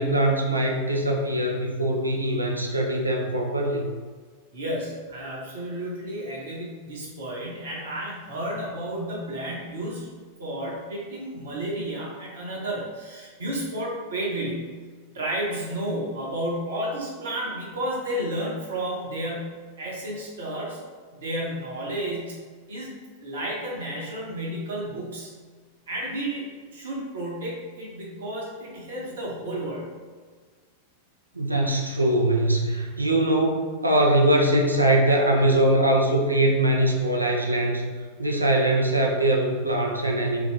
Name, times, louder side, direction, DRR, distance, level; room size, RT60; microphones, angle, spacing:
voice 1, 0.0-3.9 31.4-37.9 38.2-40.5, right 1 dB, 85° right, 0 dB, 0.3 m, -22 dB
voice 2, 4.5-14.8 15.1-20.8 21.1-22.4 22.7-22.9 23.2-25.3 25.9-26.5 26.7-29.9, right 1 dB, 65° right, -4 dB, 0.9 m, -32 dB
2.9 x 2.0 x 3.6 m, 1.5 s
figure-of-eight pair, 90°, 0 cm